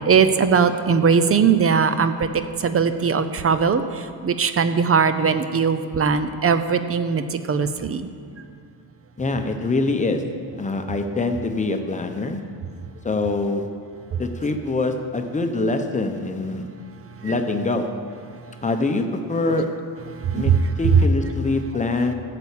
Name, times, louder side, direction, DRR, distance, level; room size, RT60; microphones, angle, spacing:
voice 1, 0.1-3.8 4.2-7.2 7.5-8.1 20.3-20.6, right 6 dB, 35° right, 10 dB, 0.6 m, -19 dB
voice 2, 9.2-10.2 10.6-12.4 13.0-13.7 14.2-16.7 17.2-17.9 18.6-19.7 20.3-20.5 20.8-22.1, left 2 dB, 15° left, 6 dB, 0.8 m, -24 dB
13.0 x 6.9 x 8.3 m, 2.4 s
wide cardioid pair, 175°, 42 cm